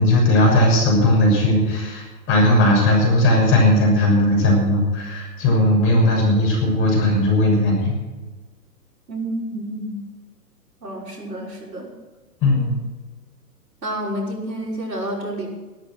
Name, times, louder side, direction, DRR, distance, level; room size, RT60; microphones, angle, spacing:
voice 1, 0.0-7.9 12.4-12.8, left 1 dB, 25° left, -1 dB, 6.8 m, -17 dB
voice 2, 9.1-10.0 10.8-11.9 13.8-15.5, right 1 dB, 85° right, -2 dB, 6.0 m, -29 dB
14.5 x 12.5 x 6.3 m, 1.2 s
hypercardioid pair, 130°, 48 cm